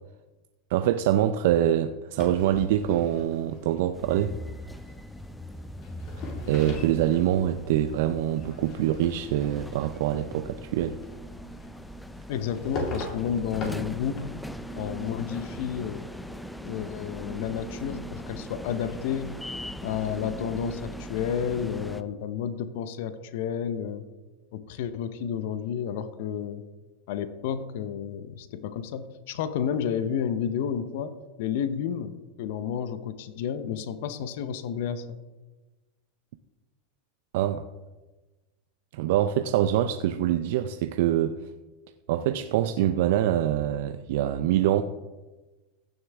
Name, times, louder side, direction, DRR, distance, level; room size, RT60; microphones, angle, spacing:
voice 1, 0.7-4.4 6.5-11.0 37.3-37.7 38.9-41.4 42.1-44.8, right 11 dB, 70° right, 0.5 m, -25 dB
sound 1, 2.2-20.1, left 2 dB, 45° left, 3.0 m, -43 dB
sound 2, 3.9-22.0, equal, 5° left, 0.5 m, -40 dB
voice 2, 12.3-14.4 14.8-16.0 16.6-19.4 19.8-24.0 24.5-26.6 27.1-35.2, left 8 dB, 70° left, 0.8 m, -31 dB
15.5 x 6.6 x 3.5 m
hypercardioid pair, 110°, 0 cm